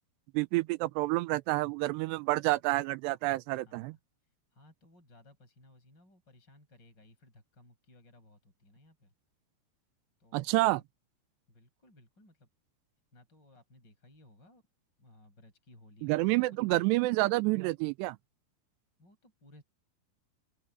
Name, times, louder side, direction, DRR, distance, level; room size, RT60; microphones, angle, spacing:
voice 1, 0.3-3.9 10.3-10.8 16.0-18.2, right 20 dB, 85° right, 2.6 m, -28 dB
voice 2, 3.7-9.1 10.2-10.8 11.5-12.5 13.1-14.6 15.0-16.9 19.0-19.6, left 1 dB, 20° left, 7.4 m, -59 dB
open air
omnidirectional pair, 5.2 m